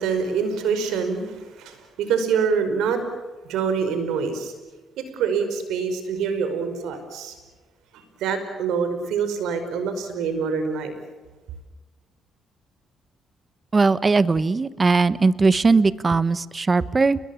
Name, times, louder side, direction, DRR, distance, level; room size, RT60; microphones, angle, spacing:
voice 1, 0.0-3.0 3.5-4.5 5.0-7.4 7.9-10.9, right 6 dB, 85° right, 8 dB, 5.2 m, -25 dB
voice 2, 13.7-17.2, right 4 dB, 30° right, 17 dB, 1.1 m, -19 dB
30.0 x 21.0 x 7.2 m, 1.3 s
cardioid pair, 90°, 0 cm